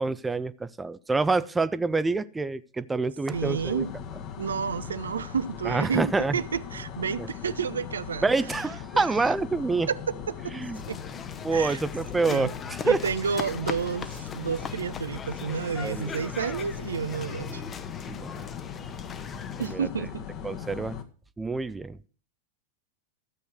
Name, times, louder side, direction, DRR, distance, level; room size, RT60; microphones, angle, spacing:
voice 1, 0.0-3.8 5.6-6.4 8.2-9.9 10.5-10.8 11.4-13.0 15.8-16.2 18.1-18.5 18.8-18.9 19.7-19.9 20.4-21.0 21.4-22.0, right 3 dB, 10° right, 0.5 m, -27 dB
sound 1, 3.3-21.0, left 8 dB, 40° left, 1.5 m, -39 dB
voice 2, 3.3-3.9 4.4-8.3 8.9-9.1 9.9-10.0 10.4-10.5 10.9-11.0 11.5-11.8 12.3-12.5 12.8-17.6 19.6-20.2, right 6 dB, 70° right, 0.6 m, -30 dB
sound 2, 10.7-19.7, left 6 dB, 25° left, 1.0 m, -40 dB
13.0 x 8.0 x 6.2 m
figure-of-eight pair, 90°, 0 cm